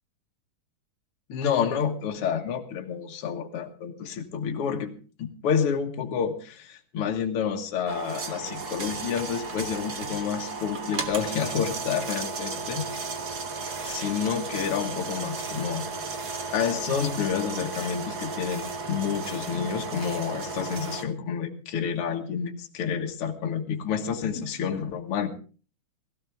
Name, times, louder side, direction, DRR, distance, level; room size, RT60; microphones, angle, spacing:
voice 1, 1.3-4.9 5.2-12.8 13.8-15.8 16.5-25.3, left 7 dB, 50° left, 3 dB, 2.2 m, -29 dB
sound 1, 7.9-21.0, right 4 dB, 50° right, 1.2 m, -34 dB
17.0 x 17.0 x 3.5 m, 0.38 s
omnidirectional pair, 3.7 m